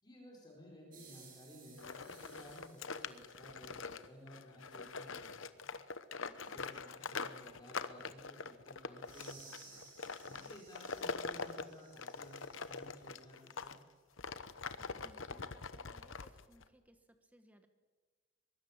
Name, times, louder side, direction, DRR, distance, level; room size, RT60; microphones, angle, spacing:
voice 1, 0.0-5.7 6.4-9.8 10.2-13.7, equal, 20° left, -1 dB, 4.8 m, -56 dB
sound 1, 0.9-4.0 9.0-13.1, right 4 dB, 40° right, 7.6 m, -60 dB
sound 2, 1.8-13.8 14.2-16.6, left 4 dB, 65° left, 1.0 m, -44 dB
voice 2, 6.1-6.7 10.3-10.6 14.8-17.7, equal, 5° right, 8 dB, 1.4 m, -65 dB
23.0 x 23.0 x 7.4 m, 1.4 s
head